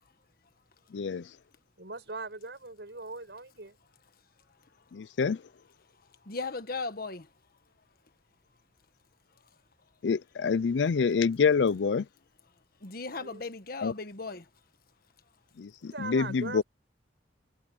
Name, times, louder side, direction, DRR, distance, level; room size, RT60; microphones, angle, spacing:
voice 1, 0.9-1.3 4.9-5.4 10.0-12.1 13.8-13.9 15.6-16.6, left 5 dB, 90° left, 0.5 m, -27 dB
voice 2, 1.8-3.8 13.1-13.4 15.9-16.6, right 3 dB, 75° right, 5.9 m, -40 dB
voice 3, 6.3-7.3 12.8-14.4, left 3 dB, 55° left, 1.4 m, -37 dB
head